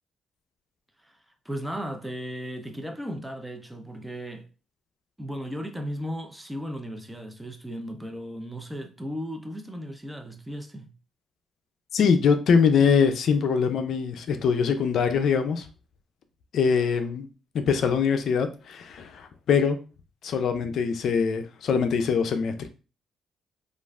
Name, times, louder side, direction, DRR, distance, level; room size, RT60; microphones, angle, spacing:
voice 1, 1.4-4.5 5.2-10.9, equal, 10° right, 0.5 m, -36 dB
voice 2, 11.9-15.7 16.5-17.3 17.5-19.8 20.2-22.7, left 6 dB, 65° left, 0.4 m, -23 dB
3.1 x 2.4 x 2.3 m
cardioid pair, 90°, 0 cm